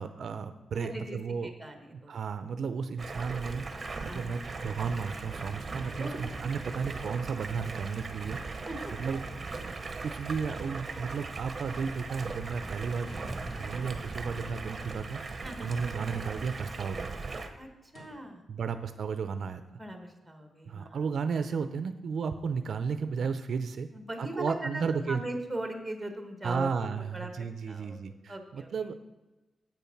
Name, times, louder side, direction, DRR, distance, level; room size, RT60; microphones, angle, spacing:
voice 1, 0.0-1.5 2.1-3.6 4.0-8.6 9.0-9.2 9.8-15.2 15.6-17.1 18.5-19.6 20.6-23.9 24.2-25.2 26.4-29.0, right 5 dB, 60° right, 10 dB, 0.5 m, -33 dB
voice 2, 0.7-2.1 4.0-4.4 6.0-6.3 8.7-8.9 15.4-15.8 17.6-18.4 19.8-21.1 23.9-27.3 27.7-28.7, right 1 dB, 5° right, 5 dB, 1.3 m, -40 dB
Stream, 3.0-17.5, right 3 dB, 30° right, 0.9 m, -39 dB
sound 1, 13.0-13.8 16.0-16.6 17.9-18.4, left 1 dB, 40° left, 2.5 m, -54 dB
8.2 x 7.0 x 5.8 m, 1.1 s
wide cardioid pair, 145°, 0 cm